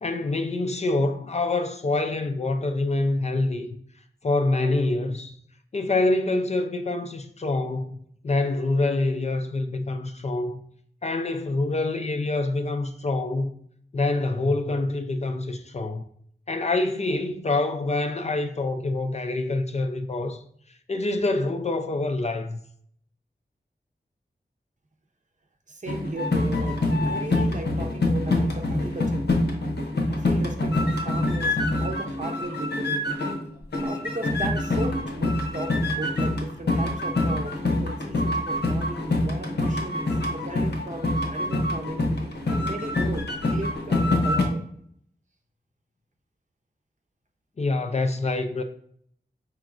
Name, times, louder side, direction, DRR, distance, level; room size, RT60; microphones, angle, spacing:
voice 1, 0.0-3.7 4.2-5.4 5.7-8.0 8.2-10.6 11.0-13.6 13.9-16.0 16.5-20.4 20.9-22.6 47.6-48.6, left 2 dB, 40° left, 0.4 m, -26 dB
voice 2, 25.7-29.5 30.1-33.1 33.8-42.1 42.5-44.6, right 2 dB, 45° right, 0.6 m, -36 dB
sound 1, 25.9-33.5 33.7-44.4, left 2 dB, 70° left, 0.8 m, -25 dB
4.5 x 3.1 x 2.4 m
wide cardioid pair, 60°, 18 cm